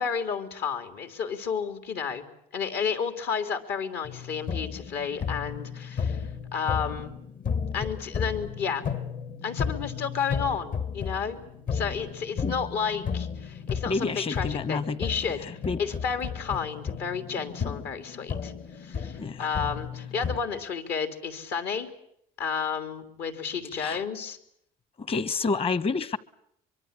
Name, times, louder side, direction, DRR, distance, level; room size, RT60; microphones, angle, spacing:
voice 1, 0.0-2.2 2.5-7.1 7.7-8.8 9.4-11.4 11.7-15.4 15.8-21.9 22.4-24.4, left 6 dB, 75° left, 3.7 m, -31 dB
sound 1, 4.0-20.4, left 6 dB, 55° left, 1.8 m, -34 dB
voice 2, 13.8-15.0 15.6-15.8 19.2-19.4 23.8-24.0 25.0-26.2, left 4 dB, 35° left, 1.2 m, -28 dB
24.0 x 24.0 x 8.4 m
cardioid pair, 110°, 17 cm